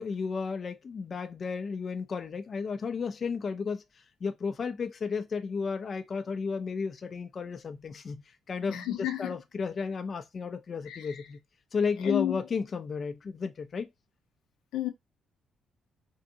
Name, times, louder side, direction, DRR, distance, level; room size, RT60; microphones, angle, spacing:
voice 1, 0.0-8.8 9.2-11.4 11.7-13.9, left 5 dB, 45° left, 0.4 m, -33 dB
voice 2, 8.7-9.4 10.9-11.3 12.0-12.4 14.7-14.9, left 13 dB, 90° left, 0.6 m, -32 dB
3.5 x 2.7 x 2.5 m
cardioid pair, 90°, 0 cm